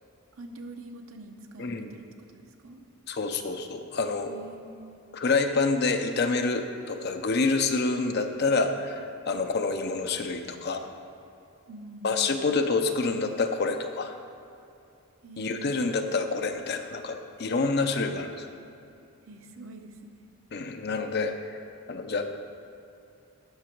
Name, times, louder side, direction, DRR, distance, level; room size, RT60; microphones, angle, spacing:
voice 1, 0.3-2.9 4.3-5.0 11.7-12.3 15.2-15.9 19.2-20.1, right 2 dB, 70° right, 4 dB, 0.8 m, -45 dB
voice 2, 3.1-4.3 5.1-10.9 12.0-14.2 15.4-18.5 20.5-21.6 21.9-22.3, left 3 dB, 45° left, 6 dB, 0.5 m, -27 dB
11.5 x 6.1 x 4.5 m, 2.6 s
head